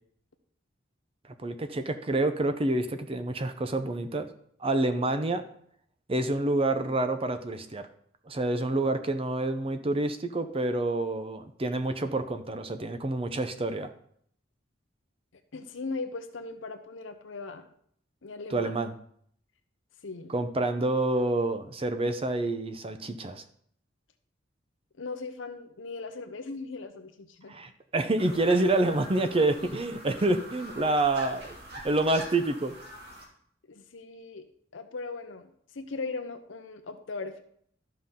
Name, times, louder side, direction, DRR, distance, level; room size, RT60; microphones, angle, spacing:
voice 1, 1.4-4.3 4.6-5.4 6.1-7.8 8.3-13.9 18.5-18.9 20.3-23.4 27.5-31.6 31.8-32.7, right 2 dB, 30° right, 8 dB, 0.7 m, -28 dB
voice 2, 15.5-17.7 18.2-18.7 20.0-20.3 25.0-27.5 33.7-34.4 34.7-37.4, left 3 dB, 85° left, 6 dB, 0.8 m, -38 dB
sound 1, 28.2-33.3, right 1 dB, 60° right, 2.2 m, -44 dB
13.0 x 5.7 x 3.7 m, 0.64 s
head